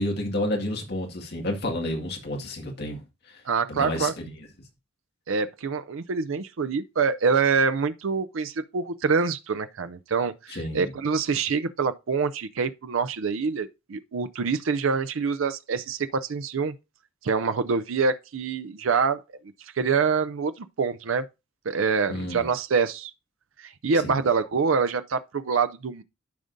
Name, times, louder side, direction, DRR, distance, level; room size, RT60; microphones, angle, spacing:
voice 1, 0.0-3.0 3.7-4.3 10.5-10.9 22.1-22.5 24.0-24.2, left 1 dB, 55° left, 2.1 m, -30 dB
voice 2, 3.5-4.1 5.3-16.7 17.2-19.2 19.8-21.2 21.7-23.1 23.6-26.0, right 5 dB, 80° right, 0.5 m, -25 dB
13.0 x 5.1 x 2.6 m
head